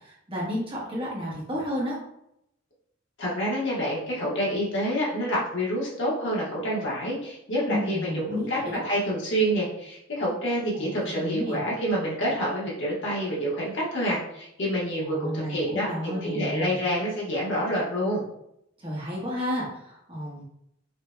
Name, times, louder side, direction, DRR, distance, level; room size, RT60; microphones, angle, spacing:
voice 1, 0.0-2.0 7.7-8.8 10.7-11.6 15.0-16.7 18.8-20.4, equal, 25° right, -5 dB, 1.2 m, -32 dB
voice 2, 3.2-8.6 8.8-18.2, equal, 65° left, -5 dB, 1.3 m, -27 dB
5.0 x 2.9 x 2.2 m, 0.77 s
head